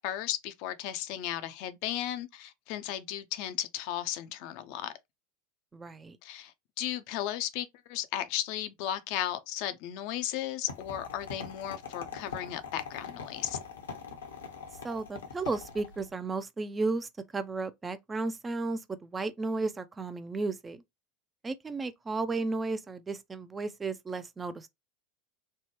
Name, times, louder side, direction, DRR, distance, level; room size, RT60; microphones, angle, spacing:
voice 1, 0.0-4.9 6.2-13.6, left 12 dB, 60° left, 0.5 m, -35 dB
voice 2, 5.7-6.2 14.8-20.8 21.4-24.7, right 3 dB, 20° right, 0.4 m, -34 dB
sound 1, 10.7-16.1, left 5 dB, 80° left, 0.8 m, -42 dB
3.3 x 2.1 x 3.0 m
hypercardioid pair, 85°, 0 cm